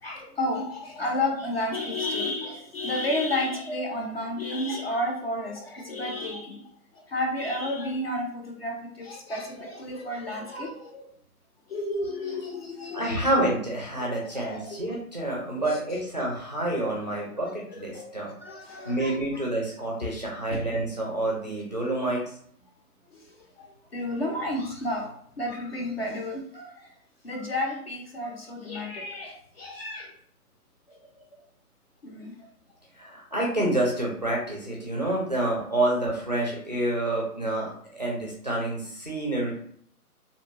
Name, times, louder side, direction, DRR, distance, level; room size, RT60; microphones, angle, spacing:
voice 1, 0.0-6.6 6.9-11.1 11.7-13.2 14.0-14.9 15.6-16.3 17.7-19.4 20.5-20.6 23.1-26.9 27.2-30.1 30.9-31.0 32.0-32.4 35.4-35.5, left 1 dB, 40° left, 1 dB, 0.5 m, -32 dB
voice 2, 12.9-18.3 18.9-22.2 33.0-39.5, right 1 dB, 30° right, -2 dB, 0.4 m, -28 dB
2.7 x 2.2 x 2.7 m, 0.62 s
figure-of-eight pair, 145°, 46 cm